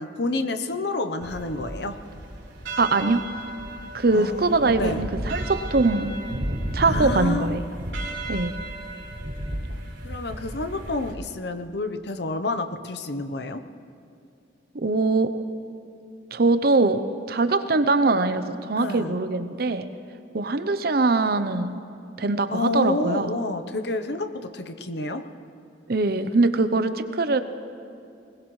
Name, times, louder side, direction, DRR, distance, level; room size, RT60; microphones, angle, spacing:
voice 1, 0.0-2.0 4.1-5.0 6.8-7.6 10.0-13.6 18.8-19.2 22.5-25.2, left 2 dB, 65° left, 9 dB, 0.9 m, -29 dB
sound 1, 1.2-11.1, right 1 dB, 80° right, 3.7 m, -33 dB
voice 2, 2.8-3.3 3.9-6.1 6.7-7.6 8.3-8.5 14.7-15.3 16.3-19.9 20.3-21.8 22.2-23.4 25.9-27.4, right 3 dB, 55° right, 10 dB, 0.7 m, -22 dB
22.0 x 20.0 x 3.2 m, 2.6 s
head